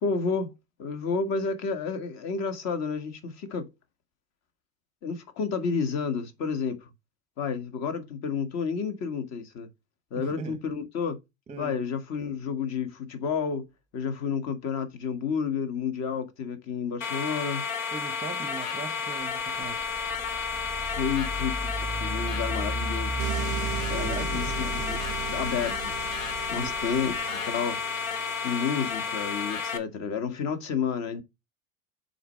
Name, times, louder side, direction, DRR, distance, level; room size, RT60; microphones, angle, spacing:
voice 1, 0.0-0.5 0.8-3.7 5.0-6.9 7.4-9.7 10.1-11.2 11.6-13.7 13.9-17.6 20.8-23.2 23.9-25.0 25.3-25.9 26.5-27.8 28.4-31.2, left 6 dB, 40° left, 1.6 m, -30 dB
voice 2, 10.2-10.6 11.5-11.8 17.9-19.9 24.0-24.9 26.5-26.8, right 5 dB, 15° right, 0.8 m, -40 dB
sound 1, 17.0-29.8, left 5 dB, 80° left, 1.3 m, -32 dB
sound 2, 19.6-27.2, right 1 dB, 10° left, 1.2 m, -35 dB
sound 3, 23.2-29.4, right 14 dB, 60° right, 0.5 m, -39 dB
6.6 x 4.4 x 4.3 m
hypercardioid pair, 85°, 40 cm